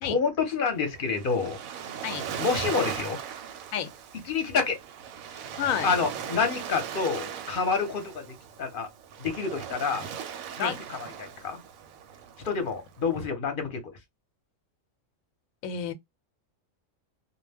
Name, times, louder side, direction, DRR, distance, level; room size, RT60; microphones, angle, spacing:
voice 1, 0.0-1.6 2.4-3.2 4.2-4.8 5.8-8.3 8.6-8.9 9.2-10.1 10.6-11.6 12.4-14.0, left 5 dB, 45° left, 0.8 m, -28 dB
Waves surf, 0.8-13.2, right 8 dB, 90° right, 1.0 m, -38 dB
voice 2, 5.6-5.9 10.6-10.8 15.6-15.9, left 9 dB, 85° left, 1.0 m, -30 dB
2.3 x 2.1 x 3.3 m
omnidirectional pair, 1.4 m